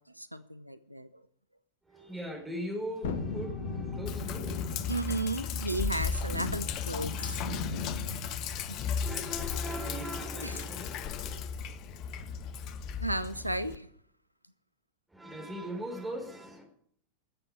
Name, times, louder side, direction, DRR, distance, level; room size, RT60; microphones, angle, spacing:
voice 1, 0.1-1.2 4.9-7.4 8.7-8.8 10.4-10.6 13.0-13.9, right 2 dB, 90° right, 13 dB, 0.6 m, -34 dB
voice 2, 1.8-4.8 9.0-11.4 15.1-16.6, equal, 5° right, 1 dB, 4.4 m, -40 dB
Thunderstorm, 3.0-13.3 13.6-13.7, left 4 dB, 60° left, 1.4 m, -39 dB
Sink (filling or washing), 4.1-13.8, left 6 dB, 40° left, 0.9 m, -36 dB
13.5 x 7.8 x 8.5 m, 0.64 s
figure-of-eight pair, 90°, 0 cm